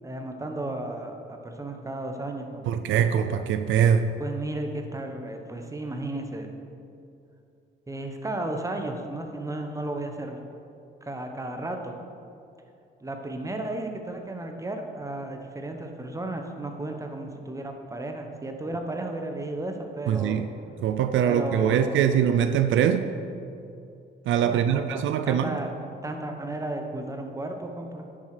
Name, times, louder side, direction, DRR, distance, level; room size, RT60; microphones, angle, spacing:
voice 1, 0.0-2.7 4.2-6.5 7.9-10.4 11.0-11.9 13.0-20.4 21.2-22.1 24.4-25.7 26.0-28.1, right 2 dB, 15° right, 4 dB, 1.2 m, -34 dB
voice 2, 2.7-4.2 20.1-20.5 20.8-23.1 24.3-25.5, right 8 dB, 75° right, 10 dB, 0.5 m, -23 dB
10.5 x 7.5 x 5.0 m, 2.6 s
cardioid pair, 90°, 20 cm